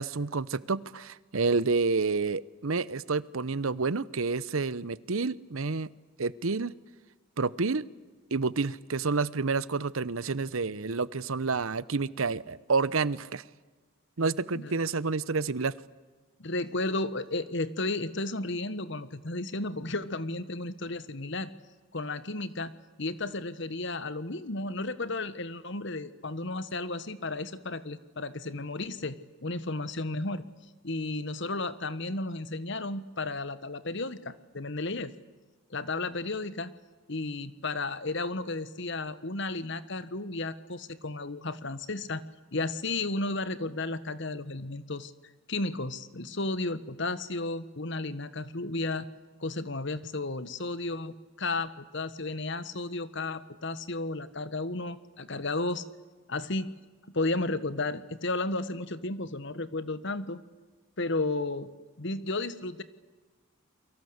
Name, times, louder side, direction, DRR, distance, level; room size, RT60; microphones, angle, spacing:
voice 1, 0.0-5.9 6.2-6.7 7.4-7.8 8.3-13.4 14.2-15.7, right 4 dB, 80° right, 19 dB, 0.9 m, -29 dB
voice 2, 16.4-21.5 21.9-22.7 23.0-29.2 29.4-30.4 30.8-35.1 35.7-36.7 37.1-42.2 42.5-45.1 45.5-49.0 49.4-55.8 56.3-56.7 57.1-60.4 61.0-61.7 62.0-62.8, left 2 dB, 60° left, 14 dB, 1.4 m, -33 dB
29.5 x 23.5 x 8.1 m, 1.3 s
head